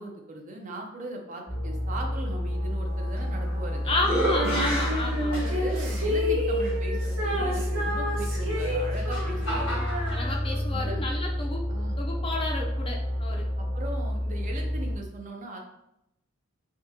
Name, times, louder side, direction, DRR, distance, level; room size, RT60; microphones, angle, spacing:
voice 1, 0.0-4.0 5.3-9.8 10.7-11.0 11.7-11.9 13.6-15.6, right 1 dB, 40° right, 2 dB, 0.5 m, -39 dB
sound 1, 1.5-15.0, equal, 60° right, 1.1 m, -30 dB
sound 2, 3.2-3.6 4.0-5.9 6.6-6.7 8.5-10.2, right 1 dB, 85° left, 1.3 m, -31 dB
voice 2, 3.9-5.3 10.1-11.6 12.0-13.5, left 2 dB, 25° left, 0 dB, 0.5 m, -31 dB
Female singing, 4.3-10.8, left 1 dB, 85° right, 1.1 m, -31 dB
3.5 x 2.7 x 2.7 m, 0.81 s
head